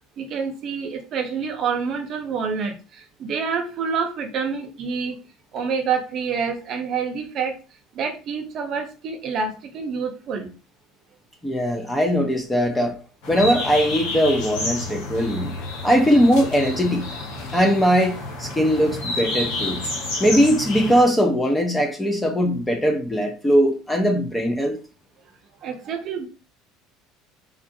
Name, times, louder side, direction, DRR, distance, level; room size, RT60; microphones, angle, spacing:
voice 1, 0.2-5.2 5.5-7.5 7.9-10.5 25.6-26.3, right 5 dB, 40° right, 0.6 m, -27 dB
voice 2, 11.4-13.0 13.3-15.5 15.8-17.1 17.5-19.8 20.2-24.8, equal, 10° left, 0.5 m, -20 dB
sound 1, 13.2-21.0, left 2 dB, 80° left, 1.3 m, -30 dB
3.4 x 2.4 x 2.6 m
cardioid pair, 160°, 0 cm